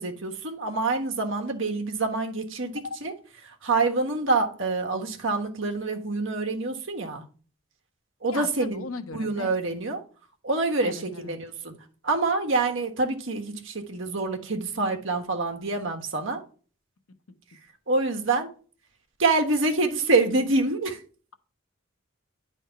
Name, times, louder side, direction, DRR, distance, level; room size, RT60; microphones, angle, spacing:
voice 1, 0.0-3.1 3.4-7.2 8.2-8.8 9.1-10.0 10.4-11.7 12.0-16.4 17.9-18.5 19.2-21.0, right 3 dB, 65° right, 1.3 m, -26 dB
voice 2, 8.3-9.5 10.8-11.4, left 4 dB, 85° left, 0.9 m, -37 dB
10.0 x 3.6 x 5.7 m
head